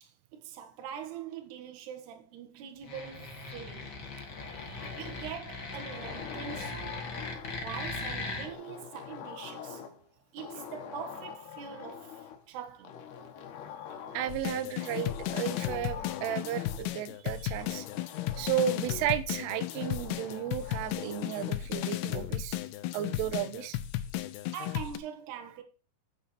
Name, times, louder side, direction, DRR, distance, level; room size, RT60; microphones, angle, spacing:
voice 1, 0.0-4.0 5.0-7.1 7.6-9.8 10.3-13.0 24.5-25.6, right 8 dB, 65° right, 3.3 m, -43 dB
sound 1, 2.8-8.5, left 3 dB, 45° left, 1.3 m, -39 dB
sound 2, 3.8-5.3 5.7-7.8 8.4-10.1 10.4-12.4 12.8-14.4 14.8-16.8 17.6-19.1 19.5-21.6, left 8 dB, 65° left, 3.0 m, -45 dB
voice 2, 14.1-17.9 18.4-22.6 22.9-23.8, right 10 dB, 85° right, 3.3 m, -33 dB
sound 3, 14.3-25.0, left 14 dB, 85° left, 2.4 m, -35 dB
9.0 x 8.3 x 4.4 m
omnidirectional pair, 5.5 m